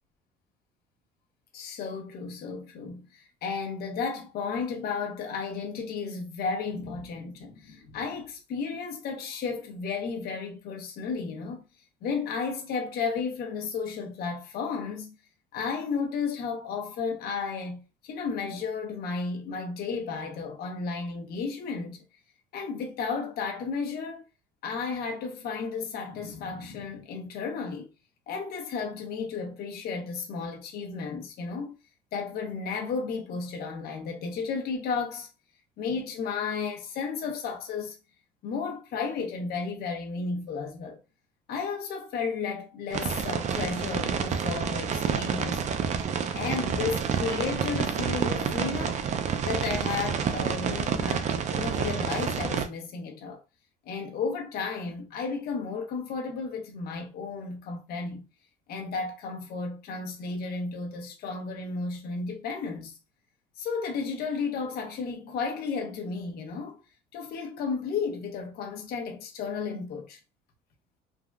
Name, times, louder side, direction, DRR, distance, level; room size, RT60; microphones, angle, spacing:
voice 1, 1.5-11.6 12.0-15.1 15.5-22.0 22.5-24.2 24.6-27.9 28.3-31.7 32.1-35.3 35.8-38.0 38.4-41.0 41.5-45.7 46.3-49.0 49.5-53.4 53.9-58.2 58.7-63.0 63.6-66.8 67.1-70.2, left 5 dB, 65° left, 0.8 m, -33 dB
sound 1, 42.9-52.7, right 7 dB, 45° right, 0.5 m, -29 dB
3.4 x 2.3 x 2.3 m
cardioid pair, 110°, 17 cm